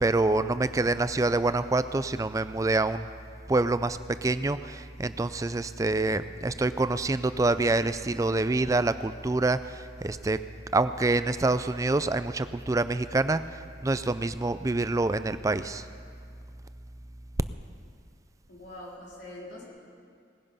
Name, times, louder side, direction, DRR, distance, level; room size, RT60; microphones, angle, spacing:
voice 1, 0.0-3.1 3.5-10.4 10.7-15.9, right 2 dB, 15° right, 13 dB, 0.3 m, -26 dB
voice 2, 18.5-19.7, left 1 dB, 65° left, -5 dB, 3.9 m, -43 dB
19.0 x 10.5 x 5.5 m, 2.3 s
head